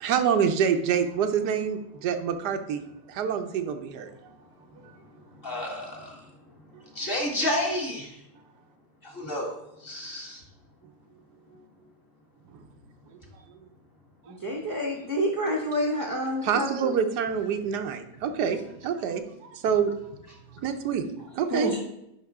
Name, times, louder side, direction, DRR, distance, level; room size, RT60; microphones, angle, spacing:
voice 1, 0.0-2.8 3.1-4.4 6.7-6.8 12.5-12.6 13.1-13.2 14.3-14.4 16.4-19.9 20.5-21.1 21.3-21.7, right 7 dB, 85° right, 7 dB, 1.3 m, -27 dB
voice 2, 5.4-6.2 7.0-8.2 9.0-10.4, left 1 dB, 35° left, -2 dB, 1.8 m, -31 dB
voice 3, 14.3-16.9 21.5-21.8, equal, 20° right, -1 dB, 0.6 m, -28 dB
10.0 x 5.5 x 3.5 m, 0.82 s
omnidirectional pair, 1.7 m